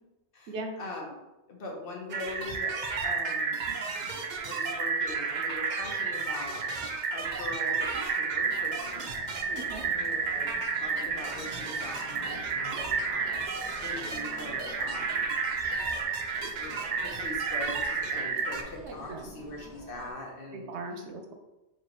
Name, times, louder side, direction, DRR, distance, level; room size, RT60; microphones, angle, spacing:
voice 1, 0.3-1.2 1.5-3.6 4.4-6.6 7.1-9.1 9.8-13.4 13.8-15.3 16.6-20.7, left 2 dB, 55° left, 0 dB, 0.9 m, -42 dB
sound 1, 2.1-18.6, right 5 dB, 60° right, 0.5 m, -31 dB
sound 2, 8.4-20.1, left 1 dB, 30° right, 1.3 m, -50 dB
voice 2, 9.5-9.8 18.8-19.3 20.5-21.3, right 2 dB, 75° right, 4 dB, 0.9 m, -39 dB
4.8 x 2.8 x 2.9 m, 1.0 s
omnidirectional pair, 1.2 m